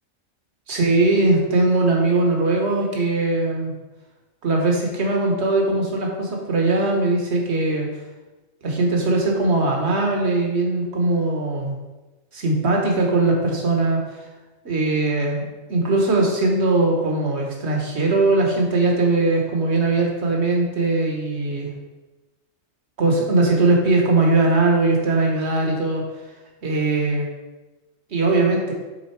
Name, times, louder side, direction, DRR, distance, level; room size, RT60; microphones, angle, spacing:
voice 1, 0.7-3.7 4.4-7.9 8.6-11.8 12.3-14.0 14.6-21.7 23.0-26.0 26.6-27.3 28.1-28.7, right 2 dB, 55° right, 0 dB, 1.5 m, -20 dB
7.4 x 3.9 x 4.6 m, 1.1 s
omnidirectional pair, 1.4 m